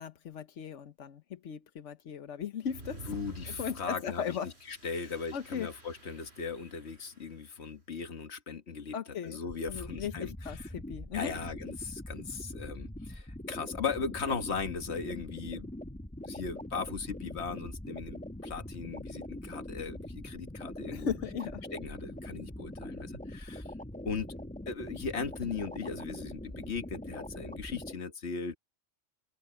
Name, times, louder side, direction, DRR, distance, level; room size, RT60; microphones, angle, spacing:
voice 1, 0.0-3.1 3.5-4.5 5.3-5.7 8.9-9.4 9.7-11.3 20.9-21.6, left 7 dB, 90° left, 1.3 m, -37 dB
sound 1, 2.6-7.5, right 2 dB, 65° right, 4.5 m, -50 dB
voice 2, 3.1-9.0 9.2-10.7 11.1-15.7 16.2-21.1 21.7-23.7 24.0-24.3 24.7-28.6, left 5 dB, 65° left, 1.7 m, -38 dB
sound 2, 9.5-27.9, left 1 dB, 5° left, 1.1 m, -43 dB
open air
omnidirectional pair, 1.2 m